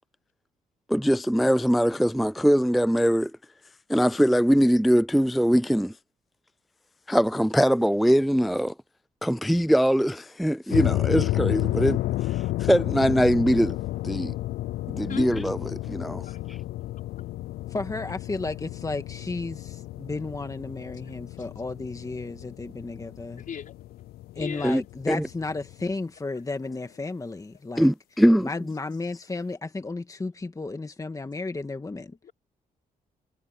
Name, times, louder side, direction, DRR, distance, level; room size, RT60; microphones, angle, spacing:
voice 1, 0.9-3.3 3.9-6.0 7.1-8.7 9.2-13.8 14.0-14.4 14.9-16.6 24.6-24.8 25.1-25.3 27.8-28.5, equal, ahead, 0.3 m, -22 dB
sound 1, 10.7-25.9, left 16 dB, 85° left, 0.4 m, -31 dB
voice 2, 16.1-16.4 21.0-21.1 23.4-23.8 24.3-24.8 32.2-32.3, left 8 dB, 60° left, 5.4 m, -37 dB
voice 3, 17.7-23.4 24.4-27.9 28.4-32.2, left 3 dB, 20° left, 1.9 m, -33 dB
cardioid pair, 80°, 16 cm